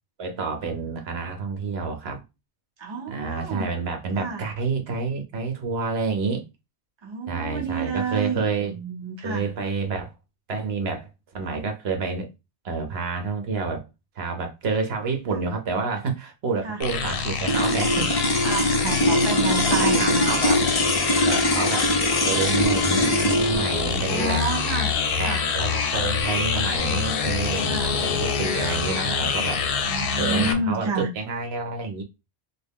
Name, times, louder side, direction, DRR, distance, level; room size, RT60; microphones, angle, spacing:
voice 1, 0.2-2.2 3.1-6.4 7.3-8.7 9.2-10.1 10.5-11.1 11.3-12.3 12.6-13.8 14.2-18.1 19.6-20.6 21.3-24.5 25.2-29.6 30.2-32.0, right 4 dB, 70° right, 1.0 m, -29 dB
voice 2, 2.8-3.7 4.1-4.4 7.0-9.5 15.3-15.5 16.6-16.8 18.4-20.9 24.1-24.9 25.2-25.4 27.7-28.0 29.9-31.1, right 3 dB, 30° right, 0.8 m, -30 dB
sound 1, 16.8-30.5, left 6 dB, 65° left, 0.7 m, -26 dB
sound 2, 17.4-27.9, left 1 dB, 30° left, 0.4 m, -23 dB
3.3 x 2.2 x 3.5 m
omnidirectional pair, 1.1 m